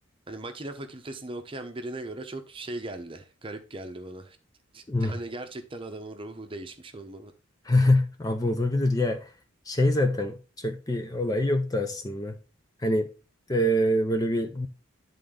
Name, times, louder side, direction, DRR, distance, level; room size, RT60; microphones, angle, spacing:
voice 1, 0.3-4.4 4.7-7.3, right 2 dB, 25° right, 0.8 m, -38 dB
voice 2, 7.7-9.3 9.7-12.4 12.8-13.1 13.5-14.7, left 1 dB, 20° left, 0.5 m, -25 dB
10.5 x 3.9 x 3.7 m
head